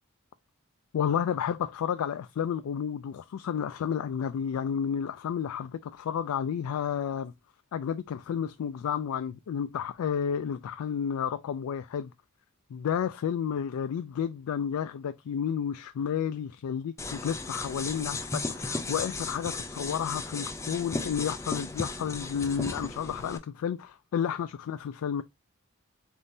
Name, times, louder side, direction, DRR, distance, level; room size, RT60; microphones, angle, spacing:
voice 1, 0.9-7.3 7.7-12.1 12.7-25.2, left 8 dB, 85° left, 0.3 m, -31 dB
sound 1, 17.0-23.4, left 3 dB, 15° left, 0.3 m, -35 dB
3.9 x 3.7 x 2.6 m
head